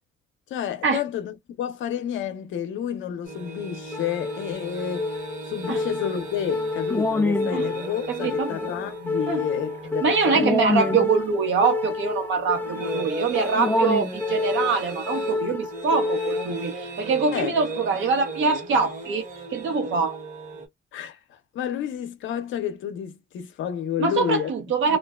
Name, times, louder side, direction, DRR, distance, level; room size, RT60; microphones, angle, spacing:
voice 1, 0.5-5.1 5.5-10.6 17.3-17.6 20.9-24.5 24.9-25.0, left 9 dB, 75° left, 0.6 m, -30 dB
sound 1, 3.2-20.7, right 2 dB, 40° right, 1.1 m, -37 dB
sound 2, 3.9-16.9, left 3 dB, 10° left, 0.4 m, -28 dB
voice 2, 8.1-8.7 9.3-9.4 10.0-20.2 24.0-25.0, right 5 dB, 75° right, 1.0 m, -24 dB
2.5 x 2.2 x 2.3 m
cardioid pair, 90°, 20 cm